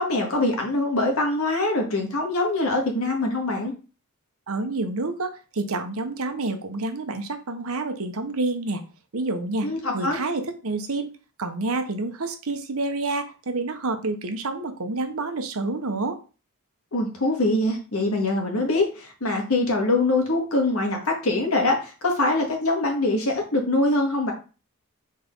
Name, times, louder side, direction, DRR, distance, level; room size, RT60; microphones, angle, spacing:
voice 1, 0.0-3.7 9.6-10.2 16.9-24.3, left 2 dB, 70° left, 2 dB, 1.8 m, -23 dB
voice 2, 4.5-8.8 9.1-9.7 9.9-11.1 11.4-16.2, right 2 dB, 70° right, 7 dB, 1.0 m, -28 dB
4.2 x 4.1 x 5.4 m, 0.34 s
head